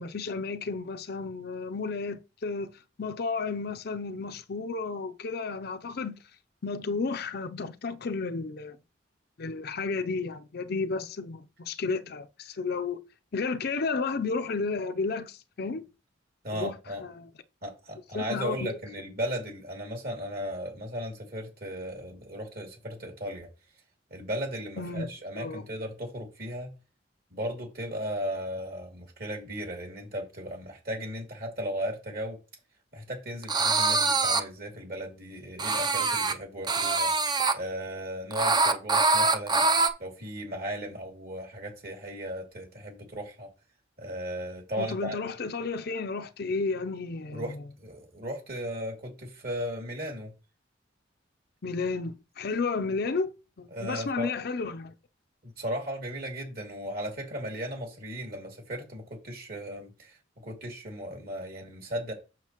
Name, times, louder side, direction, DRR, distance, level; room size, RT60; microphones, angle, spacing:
voice 1, 0.0-2.7 3.0-6.2 6.6-8.8 9.4-13.0 13.3-15.8 16.5-16.7 17.0-17.3 18.1-18.6 24.8-25.1 25.4-25.6 44.8-47.6 51.6-53.3 53.6-54.9, left 4 dB, 60° left, 0.6 m, -32 dB
voice 2, 16.4-17.0 17.6-23.5 24.1-26.7 27.3-32.4 32.9-37.1 37.5-39.6 40.0-43.5 44.0-45.2 47.3-50.3 53.7-54.3 55.4-60.2 60.4-62.1, equal, 55° right, 2.7 m, -36 dB
sound 1, 33.4-34.4 35.6-36.3 36.7-37.5 38.3-39.9, right 3 dB, 25° right, 0.6 m, -24 dB
7.5 x 6.6 x 3.0 m
head